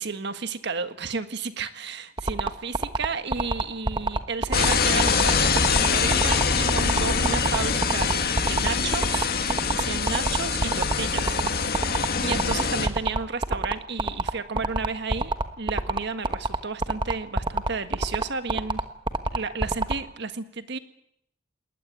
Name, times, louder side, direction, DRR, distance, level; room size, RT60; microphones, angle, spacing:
voice 1, 0.0-11.4 12.0-18.8 19.3-20.8, right 4 dB, 60° right, 10 dB, 1.6 m, -32 dB
sound 1, 2.2-19.9, right 2 dB, 25° right, 1.2 m, -25 dB
sound 2, 4.5-12.9, left 5 dB, 55° left, 2.0 m, -24 dB
21.0 x 18.5 x 9.5 m, 0.76 s
head